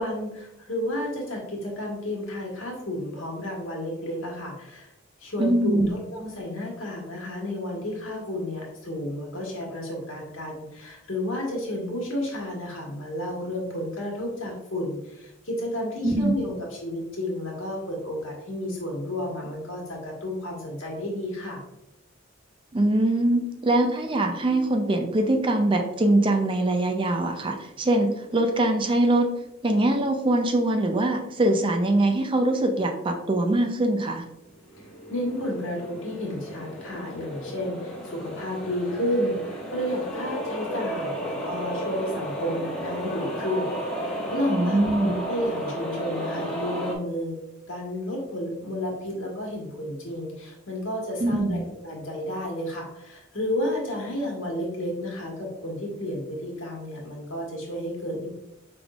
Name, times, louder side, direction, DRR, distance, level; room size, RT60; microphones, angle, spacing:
voice 1, 0.0-4.9 5.2-21.6 34.8-43.7 44.0-47.4 47.7-58.3, left 1 dB, 85° left, -2 dB, 1.4 m, -31 dB
voice 2, 5.4-5.9 16.0-16.5 22.7-29.3 29.6-34.2 44.5-45.2 51.2-51.7, right 1 dB, 25° right, 4 dB, 0.4 m, -23 dB
sound 1, 34.5-47.0, equal, 5° left, 0.8 m, -33 dB
5.0 x 3.5 x 2.4 m, 0.85 s
head